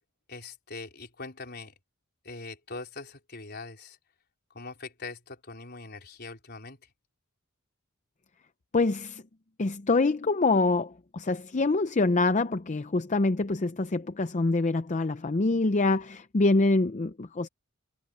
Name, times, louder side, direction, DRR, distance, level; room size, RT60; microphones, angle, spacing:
voice 1, 0.3-1.7 2.2-4.0 4.5-6.8, left 3 dB, 50° left, 4.3 m, -42 dB
voice 2, 8.7-9.2 9.6-17.5, left 3 dB, 35° left, 0.6 m, -25 dB
head